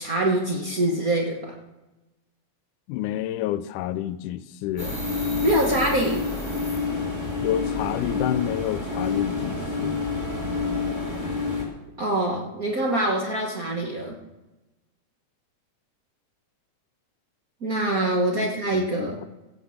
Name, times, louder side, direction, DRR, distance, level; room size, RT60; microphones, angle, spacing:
voice 1, 0.0-1.5 5.4-6.3 12.0-14.2 17.6-19.2, right 1 dB, 50° right, -1 dB, 1.1 m, -24 dB
voice 2, 2.9-5.0 7.4-10.0 18.0-18.1 18.7-19.2, left 12 dB, 85° left, 14 dB, 2.1 m, -29 dB
sound 1, 4.8-11.6, left 4 dB, 10° right, 1.7 m, -28 dB
16.0 x 5.9 x 7.1 m, 1.0 s
omnidirectional pair, 3.5 m